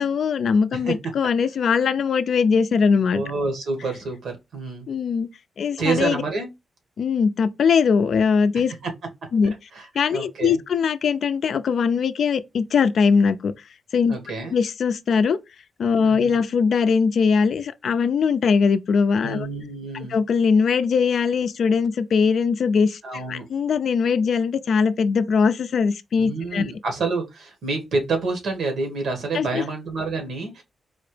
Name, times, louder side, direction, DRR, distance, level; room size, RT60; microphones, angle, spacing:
voice 1, 0.0-3.2 4.9-5.3 5.6-6.2 7.0-8.7 9.3-9.5 9.9-13.5 13.9-14.1 14.5-15.4 15.8-19.5 19.9-23.0 23.3-26.7 29.3-29.6, left 5 dB, 65° left, 0.4 m, -21 dB
voice 2, 0.7-1.1 3.1-4.9 5.8-6.5 8.7-8.9 9.7-9.9 10.1-10.6 14.1-14.6 16.0-16.3 19.2-20.2 23.0-23.4 26.2-30.6, right 3 dB, 75° right, 1.4 m, -28 dB
4.2 x 2.9 x 3.2 m
wide cardioid pair, 120°, 0 cm